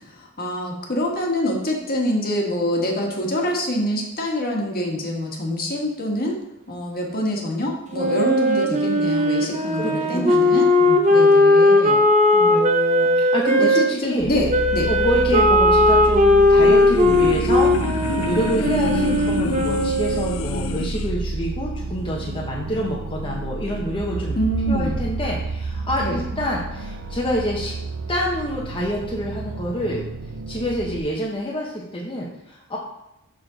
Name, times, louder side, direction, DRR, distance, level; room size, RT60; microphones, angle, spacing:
voice 1, 0.0-6.4 6.7-10.7 11.1-12.0 12.5-13.3 13.6-14.9 24.3-24.9 26.0-26.2, left 1 dB, 45° left, 0 dB, 1.5 m, -25 dB
Wind instrument woodwind instrument, 7.9-13.8 14.5-20.4, left 1 dB, 35° right, 0.8 m, -18 dB
voice 2, 9.7-10.5 10.8-11.1 12.3-12.6 13.2-14.3 14.9-24.4 24.7-27.7 28.1-30.0 30.5-32.8, equal, 25° left, -4 dB, 0.9 m, -27 dB
sound 1, 14.2-31.0, right 3 dB, 65° right, 0.5 m, -30 dB
sound 2, 16.2-21.1, left 4 dB, 80° left, 0.5 m, -29 dB
6.3 x 6.0 x 4.0 m, 0.91 s
head